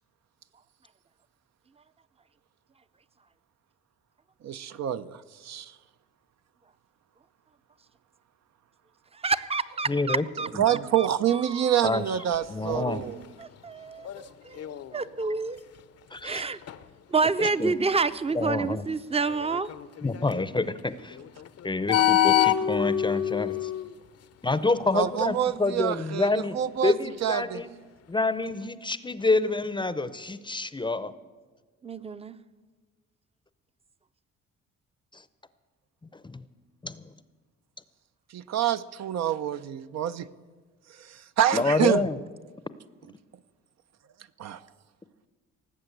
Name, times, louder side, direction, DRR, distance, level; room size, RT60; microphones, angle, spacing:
voice 1, 4.4-5.7 10.4-13.2 24.9-26.9 27.2-27.6 38.3-40.3 41.0-42.1 44.4-44.6, right 10 dB, 60° right, 11 dB, 0.6 m, -27 dB
voice 2, 9.2-11.8 13.4-15.6 16.2-16.6 17.1-19.7 31.8-32.4, right 4 dB, 20° right, 14 dB, 0.6 m, -29 dB
voice 3, 9.9-10.2 10.5-10.6 11.8-12.0 12.5-13.0 16.1-16.4 17.4-17.7 18.3-18.8 20.0-21.2 21.6-23.7 24.4-26.6 26.8-27.7 28.1-31.1 35.1-35.2 36.1-36.4 36.8-37.0 41.5-42.2, left 3 dB, 15° left, 14 dB, 0.6 m, -27 dB
sound 1, 11.9-18.5 19.2-24.8 25.2-25.5 27.2-27.3, left 11 dB, 55° left, 0.7 m, -28 dB
18.5 x 7.7 x 8.0 m, 1.4 s
cardioid pair, 90°, 30 cm